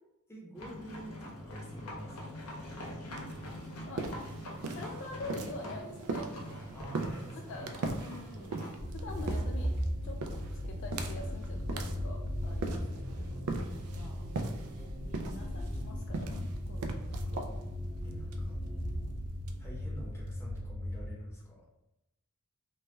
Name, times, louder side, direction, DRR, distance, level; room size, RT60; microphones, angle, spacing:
voice 1, 0.3-2.4 6.7-7.7 12.7-13.4 16.9-17.4 18.0-18.6 19.6-21.6, equal, 10° left, -5 dB, 0.8 m, -47 dB
sound 1, 0.6-8.8, left 1 dB, 80° left, 0.7 m, -44 dB
sound 2, 3.1-20.6, right 3 dB, 70° right, 0.4 m, -41 dB
voice 2, 4.7-6.3 7.3-8.7 8.9-9.7 10.0-14.2 14.7-17.5 18.0-18.3, left 2 dB, 55° left, 2 dB, 0.3 m, -46 dB
sound 3, 8.8-21.1, equal, 25° right, 0.8 m, -37 dB
3.2 x 2.2 x 3.1 m, 0.91 s
head